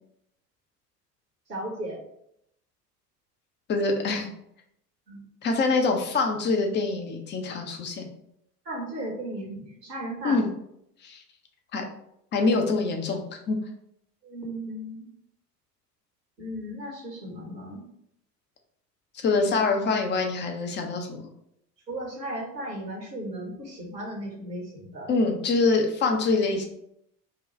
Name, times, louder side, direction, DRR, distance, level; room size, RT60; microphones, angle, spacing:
voice 1, 1.5-2.0 5.1-5.2 8.6-10.4 14.2-15.1 16.4-17.8 21.9-25.1, right 1 dB, 80° right, -2 dB, 1.7 m, -35 dB
voice 2, 3.7-4.3 5.4-8.1 10.2-10.5 11.0-11.2 11.7-11.8 12.3-13.6 19.2-21.2 25.1-26.6, left 3 dB, 20° left, 3 dB, 0.7 m, -25 dB
4.9 x 2.4 x 4.3 m, 0.75 s
figure-of-eight pair, 80°, 49 cm